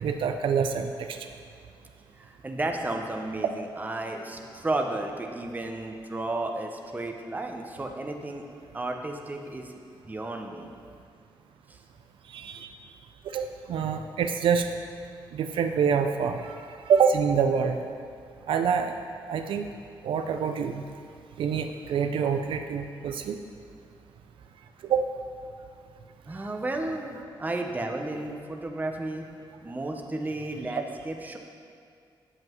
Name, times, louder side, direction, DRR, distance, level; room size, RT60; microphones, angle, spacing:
voice 1, 0.0-1.2 12.3-12.7 13.3-14.7 15.3-16.6 16.9-17.8 18.5-18.9 19.3-19.7 20.0-20.8 21.4-23.4 24.8-25.1, right 6 dB, 80° right, 6 dB, 0.4 m, -26 dB
voice 2, 2.2-8.5 8.7-9.7 10.0-10.7 11.7-11.8 26.3-29.3 29.6-31.4, right 2 dB, 20° right, 3 dB, 0.7 m, -33 dB
7.8 x 7.6 x 3.0 m, 2.3 s
cardioid pair, 105°, 9 cm